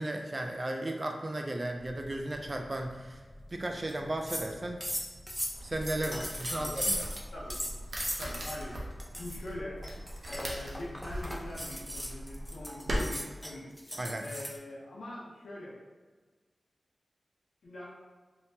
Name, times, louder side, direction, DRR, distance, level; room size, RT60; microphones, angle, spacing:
voice 1, 0.0-3.2 3.5-4.8 5.6-6.9 14.0-14.3, right 1 dB, 40° right, 3 dB, 0.4 m, -35 dB
sound 1, 1.8-9.7, left 1 dB, 50° left, 0.8 m, -53 dB
sound 2, 3.9-4.0 4.2-4.5 4.8-7.2 7.5-8.6 9.0-9.4 9.8-14.6, equal, 5° left, 0.5 m, -37 dB
sound 3, 5.5-13.0, equal, 70° right, 0.7 m, -40 dB
voice 2, 8.2-8.8 9.2-9.8 10.3-13.7 14.1-15.8 17.6-17.8, left 1 dB, 90° left, -6 dB, 0.8 m, -42 dB
3.3 x 2.8 x 2.7 m, 1.4 s
cardioid pair, 40°, 0 cm